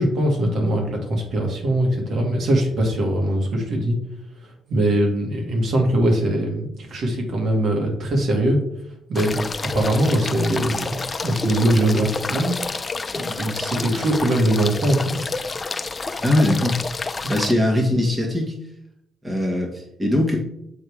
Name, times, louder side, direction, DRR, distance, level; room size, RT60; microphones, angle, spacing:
voice 1, 0.0-4.0 4.4-8.6 9.1-12.5 13.1-15.2, right 1 dB, 60° right, 1 dB, 2.2 m, -21 dB
sound 1, 9.1-17.5, left 3 dB, 30° left, 0.5 m, -29 dB
voice 2, 16.2-16.8 17.0-18.5 19.2-20.4, left 1 dB, 15° right, 0 dB, 1.6 m, -21 dB
7.6 x 3.7 x 4.9 m, 0.79 s
cardioid pair, 90°, 0 cm